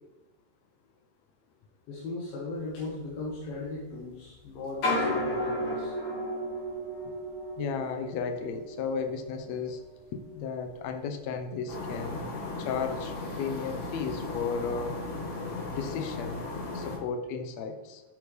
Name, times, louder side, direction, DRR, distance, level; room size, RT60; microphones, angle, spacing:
voice 1, 1.9-6.0, left 2 dB, 85° left, -4 dB, 3.1 m, -38 dB
sound 1, 2.8-2.9 3.2-4.2 4.7-10.0 10.3-10.9 11.5-11.7, left 1 dB, 55° left, 3.4 m, -34 dB
voice 2, 7.6-9.8 10.1-12.3 12.6-15.0 15.7-16.4 16.7-18.0, left 5 dB, 70° left, 7 dB, 1.7 m, -34 dB
sound 2, 11.7-17.0, left 2 dB, 35° left, 1.1 m, -36 dB
8.6 x 8.3 x 3.3 m, 1.1 s
omnidirectional pair, 4.0 m